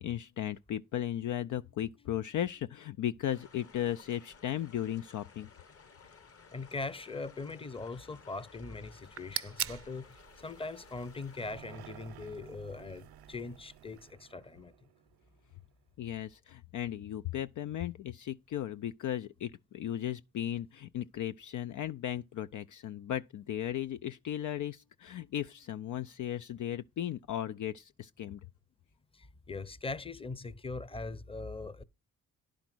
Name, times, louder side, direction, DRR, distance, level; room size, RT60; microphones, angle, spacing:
voice 1, 0.0-5.5 16.0-28.4, left 11 dB, 55° left, 0.4 m, -36 dB
sound 1, 3.3-11.5, left 5 dB, 35° left, 1.0 m, -57 dB
voice 2, 6.5-14.7 29.1-31.8, left 3 dB, 15° left, 0.7 m, -41 dB
sound 2, 8.9-14.1, right 8 dB, 35° right, 0.6 m, -44 dB
sound 3, 11.4-15.7, right 11 dB, 70° right, 0.7 m, -54 dB
10.5 x 5.1 x 6.0 m
cardioid pair, 70°, 39 cm